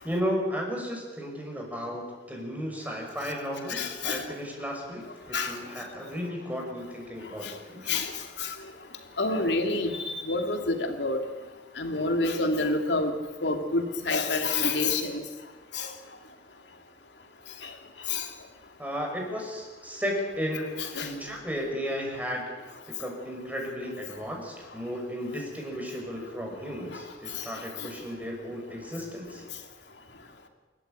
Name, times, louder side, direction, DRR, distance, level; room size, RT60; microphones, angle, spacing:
voice 1, 0.0-8.0 18.8-22.4 22.9-29.4, equal, 10° right, 0 dB, 6.1 m, -34 dB
voice 2, 3.7-4.2 5.3-5.5 7.9-8.1 9.2-11.2 11.8-13.1 13.4-15.1 15.8-15.9 18.1-18.2 21.0-21.1, left 3 dB, 85° left, 5 dB, 2.9 m, -27 dB
28.0 x 14.0 x 9.2 m, 1.3 s
head